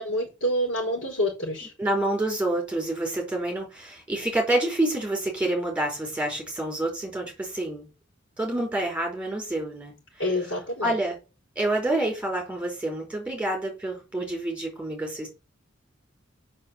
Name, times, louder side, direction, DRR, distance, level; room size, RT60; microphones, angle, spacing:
voice 1, 0.0-1.7 10.2-10.9, equal, 90° left, 4.8 m, -27 dB
voice 2, 1.8-7.9 8.4-9.9 10.8-11.2 11.5-15.3, right 1 dB, 5° right, 4.7 m, -28 dB
6.7 x 6.5 x 7.6 m
head